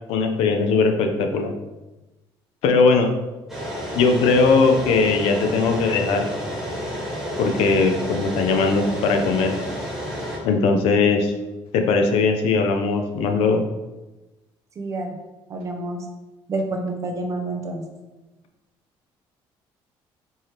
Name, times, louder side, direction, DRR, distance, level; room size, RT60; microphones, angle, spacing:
voice 1, 0.1-1.5 2.6-3.1 3.9-6.3 7.4-9.5 10.4-11.3 11.7-13.6, left 4 dB, 85° left, 5 dB, 0.5 m, -19 dB
sound 1, 3.5-10.4, equal, 5° right, 1.4 m, -30 dB
voice 2, 14.8-15.2 15.5-16.1 16.5-17.9, right 2 dB, 35° right, 3 dB, 0.6 m, -28 dB
4.6 x 3.2 x 2.9 m, 1.1 s
cardioid pair, 155°, 10 cm